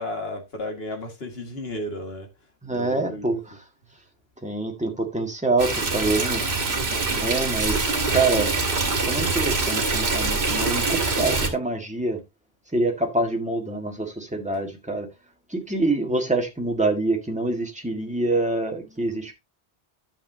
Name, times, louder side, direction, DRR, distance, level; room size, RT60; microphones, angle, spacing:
voice 1, 0.0-2.3 2.8-3.4 6.5-7.3, left 1 dB, 70° left, 2.2 m, -34 dB
voice 2, 2.6-3.4 4.4-6.4 7.2-8.5 9.0-12.2 12.7-15.1 15.5-19.3, right 2 dB, 5° right, 1.8 m, -26 dB
Stream, 5.6-11.5, right 3 dB, 75° right, 1.9 m, -24 dB
11.0 x 7.3 x 2.7 m
omnidirectional pair, 1.1 m